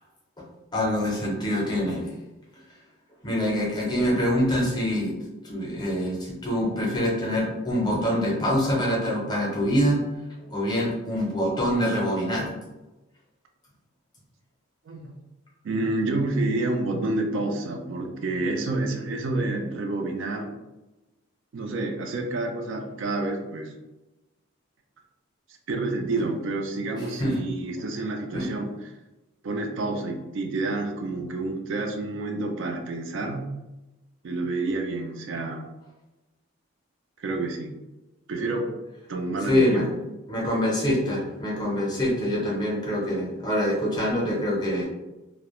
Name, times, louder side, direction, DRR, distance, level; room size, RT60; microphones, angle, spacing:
voice 1, 0.7-2.0 3.2-5.1 5.4-10.0 10.4-12.5 27.2-27.4 28.3-28.5 39.5-39.9 40.3-44.8, equal, 20° left, -3 dB, 0.6 m, -25 dB
voice 2, 14.9-15.2 15.6-20.5 21.5-23.7 25.7-28.7 29.4-33.5 34.2-35.7 37.2-37.7 38.3-38.7 39.1-39.9, right 2 dB, 65° right, 3 dB, 0.4 m, -29 dB
2.3 x 2.0 x 2.9 m, 1.0 s
head